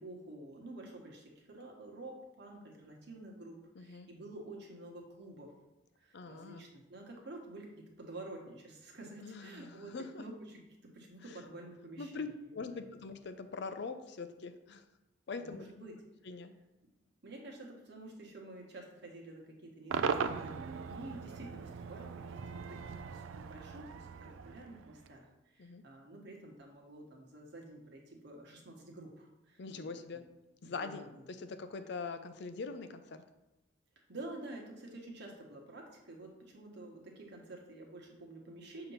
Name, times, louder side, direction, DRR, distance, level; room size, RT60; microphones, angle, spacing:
voice 1, 0.0-5.5 6.0-12.9 15.4-16.0 17.2-29.9 30.1-30.2 30.6-31.2 34.1-38.9, right 2 dB, 60° right, 0 dB, 1.3 m, -49 dB
voice 2, 3.8-4.1 6.1-6.6 9.2-10.2 12.0-14.8 15.3-15.6 16.3-16.5 25.6-25.8 29.6-30.2 30.6-33.2, left 4 dB, 60° left, 9 dB, 0.5 m, -43 dB
Cheering / Crowd / Fireworks, 19.9-25.2, right 6 dB, 80° right, 0.4 m, -39 dB
6.7 x 2.9 x 5.5 m, 0.95 s
head